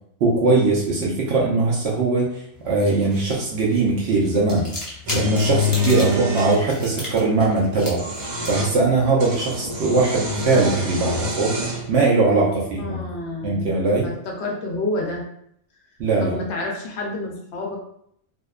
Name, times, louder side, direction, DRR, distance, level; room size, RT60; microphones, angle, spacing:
voice 1, 0.2-4.7 5.1-8.0 8.5-11.6 11.9-13.0 13.4-14.1 16.0-16.3, right 3 dB, 65° right, -4 dB, 0.7 m, -20 dB
sound 1, 2.5-11.0, left 2 dB, 35° left, 0.3 m, -37 dB
sound 2, 5.1-6.6 7.8-8.7 9.2-11.9, left 2 dB, 90° right, 1.1 m, -25 dB
voice 2, 12.3-15.2 16.2-17.8, left 2 dB, 65° left, -1 dB, 0.7 m, -29 dB
2.7 x 2.1 x 2.3 m, 0.72 s
omnidirectional pair, 1.4 m